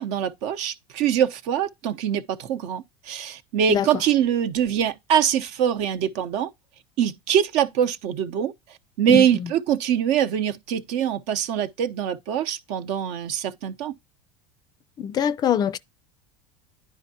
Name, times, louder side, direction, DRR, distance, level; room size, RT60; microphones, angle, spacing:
voice 1, 0.0-6.5 7.0-8.5 9.0-13.9, right 9 dB, 65° right, 0.8 m, -23 dB
voice 2, 15.0-15.8, left 9 dB, 30° left, 0.4 m, -23 dB
10.0 x 4.6 x 2.8 m
supercardioid pair, 120°, 13 cm